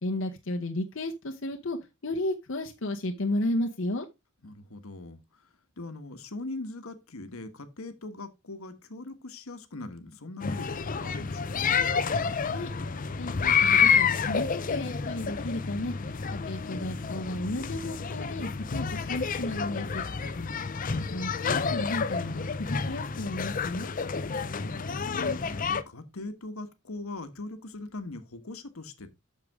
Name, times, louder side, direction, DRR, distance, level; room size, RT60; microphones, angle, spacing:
voice 1, 0.0-1.8 2.0-4.1 12.5-12.7 13.2-15.9 16.3-20.0 21.1-23.9, left 1 dB, 60° left, 0.9 m, -33 dB
voice 2, 4.4-11.8 20.3-20.9 24.6-29.1, left 2 dB, 90° left, 1.3 m, -41 dB
sound 1, 10.4-25.8, left 6 dB, 40° left, 0.6 m, -29 dB
8.1 x 6.7 x 3.5 m
head